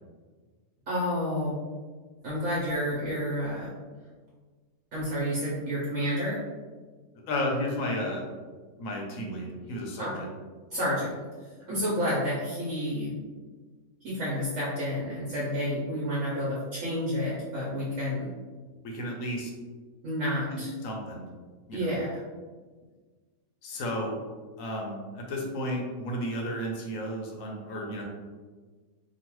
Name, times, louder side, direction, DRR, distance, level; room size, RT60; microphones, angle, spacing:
voice 1, 0.9-1.6 2.2-3.7 4.9-6.4 10.0-10.2 10.7-11.1 11.7-13.1 14.0-18.3 20.0-20.7 21.7-22.2, equal, 60° right, -8 dB, 1.1 m, -30 dB
voice 2, 7.3-8.2 8.8-10.3 18.8-19.5 20.5-21.2 21.7-22.0 23.6-24.2 24.6-28.0, equal, 65° left, 0 dB, 1.0 m, -33 dB
2.9 x 2.4 x 3.0 m, 1.4 s
omnidirectional pair, 1.6 m